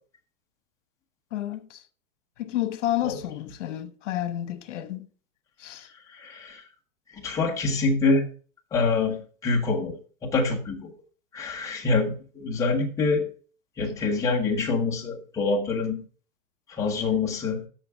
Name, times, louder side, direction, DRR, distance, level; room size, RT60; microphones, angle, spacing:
voice 1, 1.3-1.8 2.4-5.1 5.6-5.9, left 13 dB, 65° left, 1.2 m, -30 dB
voice 2, 6.1-6.6 7.1-8.3 8.7-10.0 10.2-10.9 11.3-13.3 13.8-16.0 16.7-17.6, left 3 dB, 10° left, 0.9 m, -25 dB
14.0 x 5.8 x 3.5 m
supercardioid pair, 175°, 40 cm